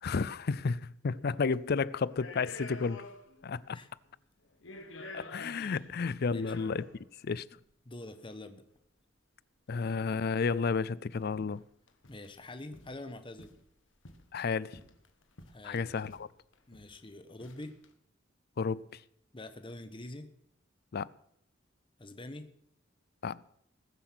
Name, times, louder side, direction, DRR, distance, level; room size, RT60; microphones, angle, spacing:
voice 1, 0.0-3.0 3.4-3.8 5.1-6.9 7.2-7.4 9.7-11.6 14.3-14.8 15.6-16.3 18.6-19.0 20.9-21.1 23.2-23.4, left 5 dB, 55° left, 0.5 m, -32 dB
sound 1, 1.3-1.5 2.1-3.5 3.8-3.9 4.5-7.1 8.0-8.1 9.8-10.3 10.8-10.9 11.1-11.6 11.9-12.3 12.7-13.0 13.4-14.3 14.7-15.7 16.1-16.3 16.5-17.0 17.4-17.9, left 2 dB, 80° left, 1.7 m, -49 dB
voice 2, 7.8-8.6 12.1-13.5 15.5-15.9 16.7-17.8 19.3-20.3 22.0-22.5, left 1 dB, 25° left, 1.2 m, -45 dB
20.5 x 8.0 x 6.2 m
head